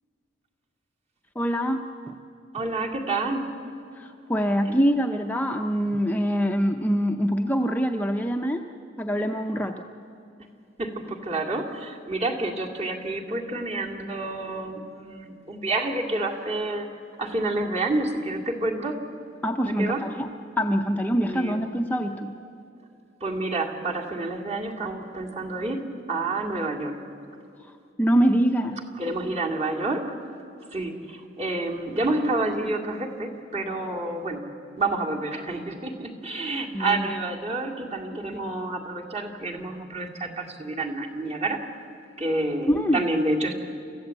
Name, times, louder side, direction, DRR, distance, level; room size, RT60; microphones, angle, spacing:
voice 1, 1.4-2.2 4.0-8.6 9.0-9.9 19.4-20.3 20.6-22.3 28.0-28.8 36.7-37.1 38.3-38.4 42.7-43.0, equal, 10° left, 4 dB, 0.6 m, -24 dB
voice 2, 2.5-3.5 4.7-4.8 10.8-16.9 17.2-19.0 19.6-20.1 21.2-21.6 23.2-27.0 29.0-30.0 30.7-34.4 34.8-41.6 42.2-43.5, right 2 dB, 35° right, 0 dB, 2.2 m, -29 dB
28.5 x 14.5 x 8.3 m, 2.7 s
head